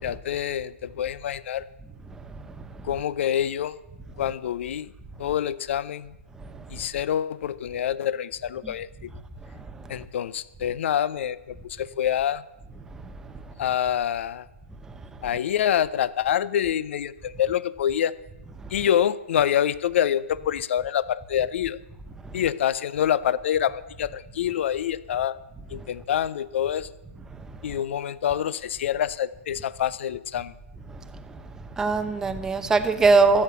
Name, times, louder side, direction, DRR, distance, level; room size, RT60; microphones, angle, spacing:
voice 1, 0.0-1.6 2.8-3.8 4.2-4.9 5.2-6.2 6.7-9.1 9.9-12.4 13.6-14.5 15.2-18.1 18.7-21.8 22.3-25.4 25.7-26.9 27.6-30.5, left 10 dB, 60° left, 0.6 m, -26 dB
voice 2, 31.8-33.4, right 4 dB, 10° right, 0.7 m, -21 dB
13.0 x 9.3 x 6.9 m
hypercardioid pair, 145°, 7 cm